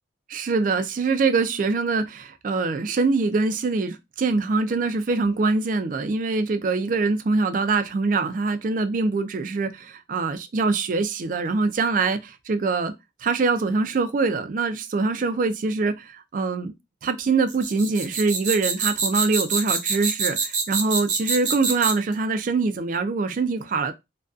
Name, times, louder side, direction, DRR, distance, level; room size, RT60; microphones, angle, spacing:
voice 1, 0.3-12.9 13.2-16.7 17.0-23.9, right 4 dB, 50° right, 0.4 m, -24 dB
sound 1, 17.5-22.1, right 5 dB, 80° right, 0.9 m, -25 dB
2.5 x 2.2 x 2.3 m
head